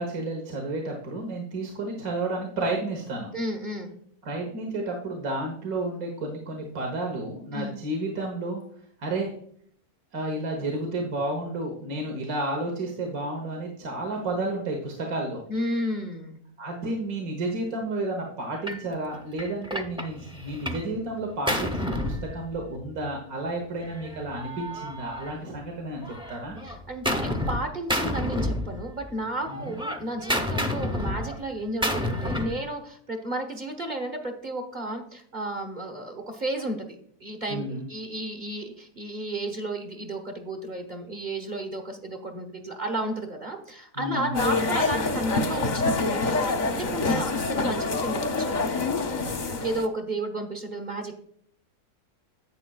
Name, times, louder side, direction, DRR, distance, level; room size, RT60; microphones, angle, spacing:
voice 1, 0.0-3.3 4.2-8.6 9.0-9.3 10.1-15.4 16.6-26.6 29.5-29.7 37.5-37.8 44.0-44.6 49.2-49.6, right 2 dB, 70° right, 1 dB, 1.7 m, -31 dB
voice 2, 3.3-3.9 7.5-7.7 15.5-16.4 26.6-48.6 49.6-51.1, right 1 dB, 35° right, 4 dB, 1.1 m, -32 dB
Gunshot gunfire, 18.7-18.9 19.4-20.9 21.2-22.9 23.8-25.7 26.0-27.6 27.9-29.1 29.4-32.6, left 1 dB, 5° right, 0.4 m, -30 dB
sound 1, 44.3-49.9, left 3 dB, 45° left, 0.6 m, -26 dB
10.5 x 8.4 x 2.3 m, 0.63 s
omnidirectional pair, 1.6 m